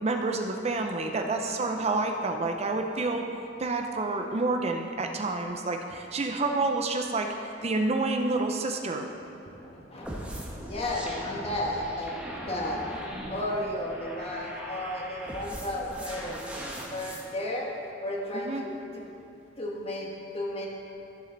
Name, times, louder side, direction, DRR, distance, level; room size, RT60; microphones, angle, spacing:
voice 1, 0.0-3.3 3.6-7.3 7.6-9.1 18.3-18.6, right 3 dB, 35° right, 4 dB, 0.6 m, -28 dB
voice 2, 9.6-10.1 10.7-12.8 13.3-16.4 16.8-17.7 18.0-18.7 19.6-20.7, left 1 dB, 35° left, -2 dB, 1.6 m, -33 dB
sound 1, 10.0-17.2, equal, 5° right, 1.2 m, -40 dB
14.0 x 7.3 x 4.0 m, 2.7 s
head